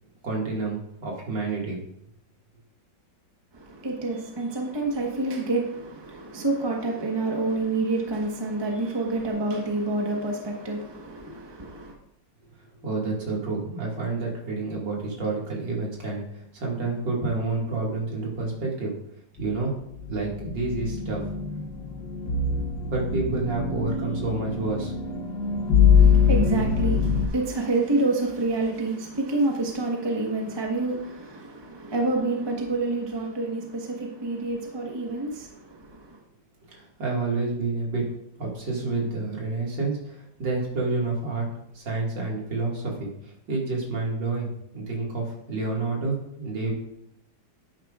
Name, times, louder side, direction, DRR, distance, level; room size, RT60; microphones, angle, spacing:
voice 1, 0.2-1.8 12.8-19.0 19.4-19.7 20.1-21.2 22.9-24.9 36.7-38.1 38.4-41.4 41.7-46.7, right 3 dB, 65° right, 2.8 m, -29 dB
voice 2, 3.5-11.9 25.9-36.2, right 2 dB, 15° right, 1.1 m, -28 dB
sound 1, 20.0-27.3, left 6 dB, 70° left, 1.6 m, -23 dB
10.5 x 9.1 x 2.5 m
omnidirectional pair, 2.1 m